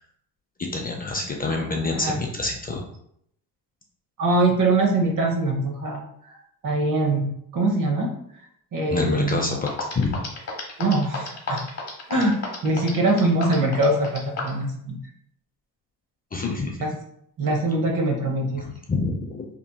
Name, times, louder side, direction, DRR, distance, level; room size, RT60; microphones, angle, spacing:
voice 1, 0.6-2.8 8.9-9.7 9.9-10.2 16.3-16.8 18.6-19.5, left 3 dB, 25° left, 0 dB, 0.4 m, -27 dB
voice 2, 4.2-6.0 6.6-8.1 8.7-9.6 10.8-11.6 12.1-15.0 16.8-16.9 17.4-18.6, right 2 dB, 55° right, 1 dB, 0.9 m, -23 dB
sound 1, 9.3-9.4 9.7-14.6, left 4 dB, 40° left, 1.1 m, -32 dB
3.0 x 2.5 x 2.2 m, 0.71 s
supercardioid pair, 70°, 39 cm